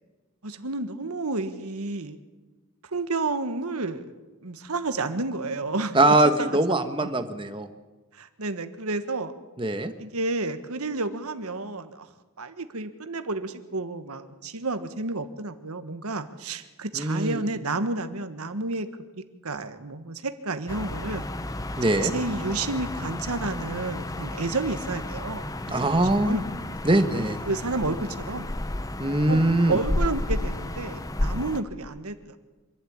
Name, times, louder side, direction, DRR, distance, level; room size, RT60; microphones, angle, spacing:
voice 1, 0.4-2.2 2.9-4.1 4.4-6.0 6.4-7.1 8.1-9.3 10.0-12.1 12.4-18.9 19.4-21.3 21.9-25.9 26.2-26.4 27.5-28.5 29.3-29.4 29.7-32.4, right 3 dB, 80° right, 10 dB, 1.5 m, -31 dB
voice 2, 5.9-7.7 9.6-9.9 16.9-17.4 21.8-22.1 25.7-26.4 26.8-27.4 29.0-29.8, right 2 dB, 20° right, 8 dB, 1.3 m, -22 dB
sound 1, 20.7-31.6, left 1 dB, 15° left, 0.7 m, -32 dB
25.5 x 12.0 x 8.7 m, 1.2 s
head